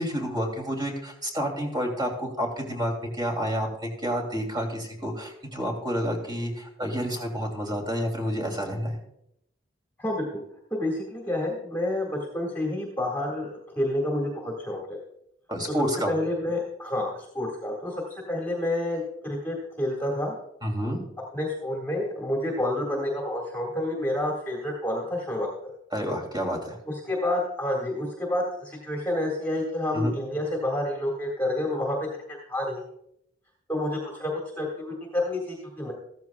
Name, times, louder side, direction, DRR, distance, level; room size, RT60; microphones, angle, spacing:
voice 1, 0.0-9.0 15.5-16.1 20.6-21.0 25.9-26.8 29.9-30.1, equal, 25° right, 2 dB, 2.9 m, -29 dB
voice 2, 10.0-10.4 10.7-15.0 15.7-15.8 16.1-17.9 18.3-20.3 21.3-25.7 26.9-32.0 32.5-32.8 33.7-35.9, left 1 dB, 10° left, -2 dB, 1.9 m, -29 dB
15.0 x 13.5 x 2.3 m, 0.77 s
head